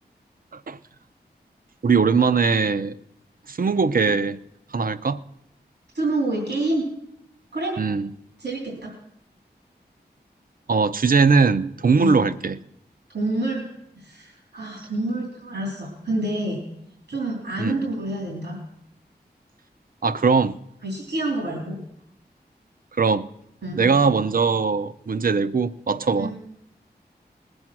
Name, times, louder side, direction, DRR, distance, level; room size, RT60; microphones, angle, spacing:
voice 1, 1.8-2.9 3.5-4.4 4.7-5.2 7.8-8.1 10.7-12.6 17.6-17.8 20.0-20.5 23.0-23.2 23.7-26.3, right 5 dB, 55° right, 12 dB, 0.6 m, -20 dB
voice 2, 5.9-6.9 7.5-7.7 8.4-8.9 12.0-12.2 13.1-13.6 13.9-16.6 17.1-18.6 20.8-21.8 23.6-24.0 26.2-26.4, right 2 dB, 90° right, -2 dB, 3.2 m, -27 dB
19.5 x 7.9 x 6.0 m, 0.77 s
wide cardioid pair, 60°, 17 cm